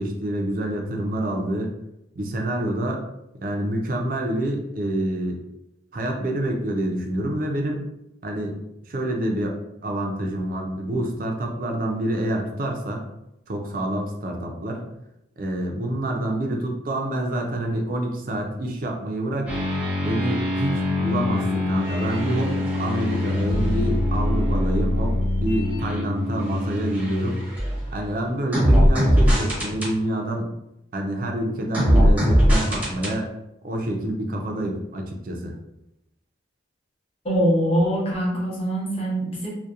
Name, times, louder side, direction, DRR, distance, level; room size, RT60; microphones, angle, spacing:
voice 1, 0.0-1.7 2.2-3.0 3.4-5.4 5.9-7.8 8.2-8.6 8.8-13.1 13.5-14.9 15.4-19.6 20.0-27.6 27.9-30.5 30.9-33.3 33.6-35.5, right 1 dB, 45° right, 2 dB, 0.4 m, -27 dB
sound 1, 19.5-28.0 28.5-29.9 31.7-33.1, equal, 10° right, 0.6 m, -22 dB
voice 2, 37.2-39.5, equal, 30° left, -4 dB, 0.7 m, -23 dB
2.7 x 2.1 x 2.4 m, 0.86 s
head